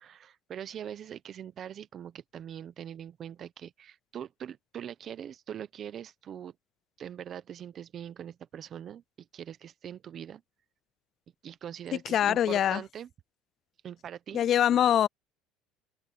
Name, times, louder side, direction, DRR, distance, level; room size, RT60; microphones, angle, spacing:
voice 1, 0.0-6.5 7.0-10.4 11.4-13.1 13.8-14.4, right 9 dB, 40° right, 0.9 m, -42 dB
voice 2, 12.1-12.8 14.3-15.1, left 10 dB, 40° left, 0.4 m, -23 dB
open air
cardioid pair, 140°, 0 cm